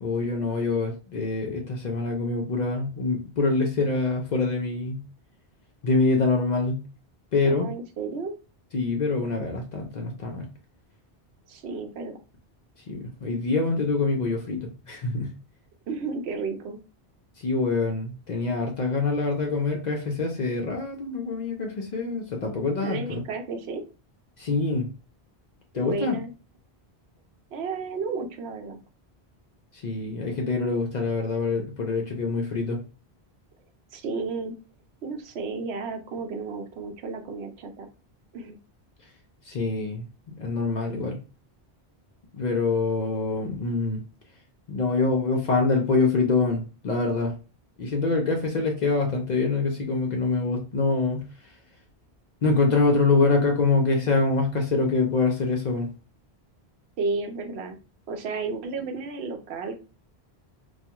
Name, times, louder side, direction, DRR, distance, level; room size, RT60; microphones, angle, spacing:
voice 1, 0.0-5.0 5.8-6.8 7.3-7.7 8.7-10.5 12.9-15.3 17.4-23.2 24.4-24.9 25.7-26.2 29.7-32.8 39.5-40.1 40.4-41.2 42.3-44.0 44.7-47.3 47.8-51.3 52.4-55.9, left 3 dB, 55° left, 2 dB, 0.5 m, -25 dB
voice 2, 7.4-8.4 11.5-12.2 15.9-16.8 22.8-23.8 25.8-26.3 27.5-28.8 33.9-34.6 35.0-37.9 38.3-38.6 57.0-57.8 58.1-59.8, right 4 dB, 80° right, 5 dB, 0.8 m, -32 dB
2.3 x 2.2 x 2.8 m, 0.32 s
omnidirectional pair, 1.1 m